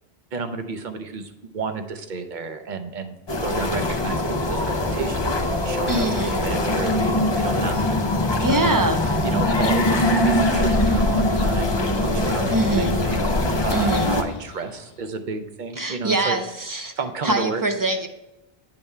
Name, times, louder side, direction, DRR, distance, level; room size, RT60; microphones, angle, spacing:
voice 1, 0.3-3.2 3.4-5.2 5.6-8.0 8.4-8.8 9.3-16.4 17.0-17.6, right 4 dB, 55° right, 7 dB, 0.7 m, -32 dB
sound 1, 3.3-14.2, left 1 dB, 30° left, 0.6 m, -22 dB
voice 2, 5.9-6.5 8.4-9.0 12.5-12.9 13.7-14.1 15.8-16.9 17.2-18.1, right 2 dB, 35° right, 6 dB, 0.3 m, -23 dB
sound 2, 8.8-15.1, left 6 dB, 85° left, 0.8 m, -39 dB
8.6 x 3.5 x 5.3 m, 0.92 s
omnidirectional pair, 1.0 m